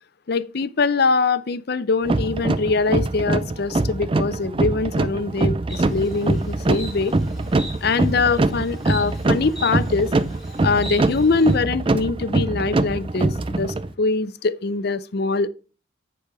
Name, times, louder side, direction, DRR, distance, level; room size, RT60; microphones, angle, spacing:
voice 1, 0.3-7.1 7.8-10.1 10.6-15.5, left 4 dB, 50° left, 0.5 m, -23 dB
sound 1, 2.0-13.9, right 2 dB, 25° right, 0.4 m, -23 dB
Insect, 5.7-11.6, left 1 dB, ahead, 2.4 m, -40 dB
9.9 x 4.7 x 4.9 m
head